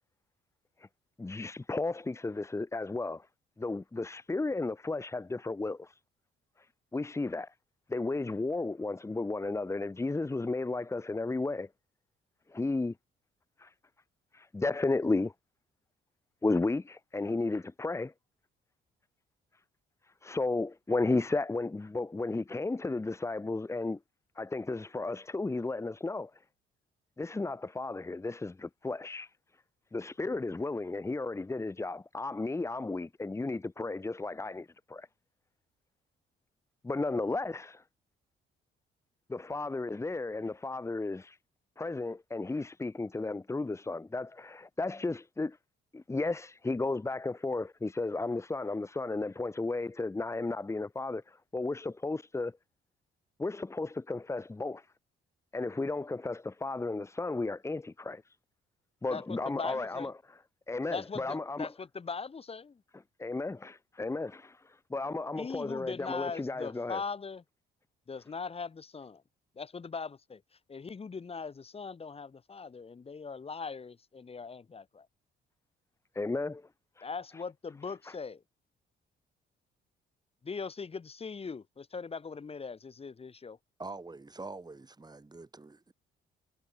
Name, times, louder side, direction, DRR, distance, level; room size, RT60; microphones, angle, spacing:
voice 1, 1.2-3.3 3.6-6.0 6.6-6.7 6.9-7.5 7.9-11.7 12.5-12.9 13.6-13.7 14.3-15.3 16.4-18.1 20.2-24.0 24.4-26.3 27.2-29.3 29.9-35.1 36.8-37.8 39.3-41.4 41.8-45.6 45.9-52.5 53.4-54.9 55.5-58.4 59.0-60.1 60.7-61.7 63.2-67.0 76.1-76.7 77.0-77.1 78.1-78.2, left 3 dB, 15° left, 0.8 m, -34 dB
voice 2, 59.1-60.1 60.9-62.8 65.4-67.4 68.1-69.2 69.5-70.4 70.7-75.1 77.0-78.4 80.4-83.6, left 5 dB, 30° left, 1.1 m, -40 dB
voice 3, 83.8-85.9, right 3 dB, 20° right, 4.2 m, -45 dB
cardioid pair, 90°, 20 cm